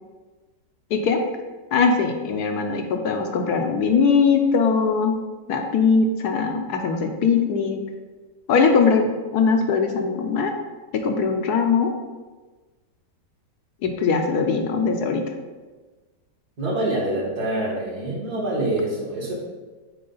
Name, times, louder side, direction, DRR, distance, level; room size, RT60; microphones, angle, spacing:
voice 1, 0.9-1.2 1.7-5.1 5.5-7.8 8.5-10.5 10.9-11.9 13.8-15.2, left 5 dB, 70° left, 4 dB, 1.1 m, -21 dB
voice 2, 16.6-19.3, right 1 dB, 65° right, -4 dB, 2.3 m, -25 dB
7.6 x 4.6 x 4.0 m, 1.3 s
omnidirectional pair, 1.8 m